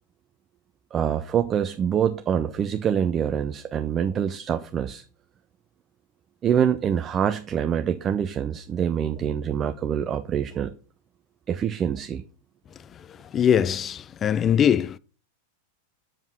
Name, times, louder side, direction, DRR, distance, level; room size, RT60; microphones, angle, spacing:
voice 1, 0.9-5.0 6.4-10.7 11.5-12.2, right 8 dB, 25° right, 0.5 m, -25 dB
voice 2, 12.9-15.0, left 9 dB, 25° left, 0.4 m, -22 dB
7.4 x 5.4 x 6.2 m
figure-of-eight pair, 90°, 0 cm